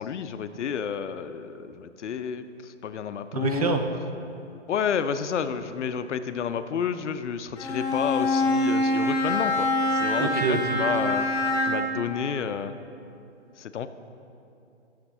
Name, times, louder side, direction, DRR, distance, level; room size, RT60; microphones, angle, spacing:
voice 1, 0.0-3.8 4.7-11.3 11.6-12.8 13.6-13.9, left 7 dB, 75° left, 11 dB, 0.5 m, -30 dB
voice 2, 3.3-3.8 10.1-10.6, right 5 dB, 35° right, 6 dB, 0.4 m, -26 dB
Bowed string instrument, 7.5-12.0, left 1 dB, 10° left, 1.4 m, -25 dB
9.7 x 6.5 x 3.5 m, 2.7 s
figure-of-eight pair, 130°, 36 cm